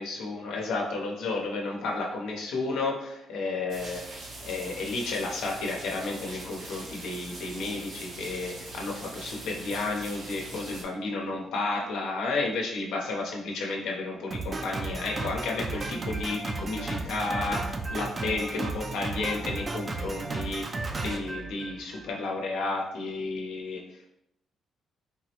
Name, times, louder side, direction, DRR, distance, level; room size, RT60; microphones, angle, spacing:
voice 1, 0.0-4.0 4.4-24.1, left 3 dB, 80° left, -1 dB, 0.7 m, -32 dB
sound 1, 3.7-10.8, right 2 dB, 75° right, 0.9 m, -42 dB
Drum kit, 14.3-22.1, right 3 dB, 35° right, 0.4 m, -34 dB
3.7 x 2.0 x 2.8 m, 0.82 s
cardioid pair, 90°, 0 cm